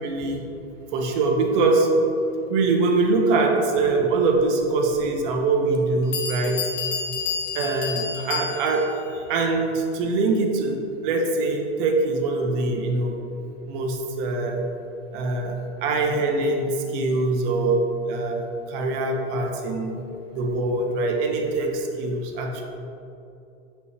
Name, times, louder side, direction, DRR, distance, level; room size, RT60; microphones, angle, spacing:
voice 1, 0.0-0.4 0.9-1.9 2.5-6.6 7.5-13.2 13.7-14.7 15.1-20.0 20.3-22.6, right 3 dB, 50° right, 1 dB, 0.8 m, -23 dB
Bell, 4.9-5.0 5.7-5.8 6.1-8.9, left 6 dB, 80° left, 1.0 m, -30 dB
6.8 x 4.2 x 3.3 m, 2.8 s
hypercardioid pair, 125°, 35 cm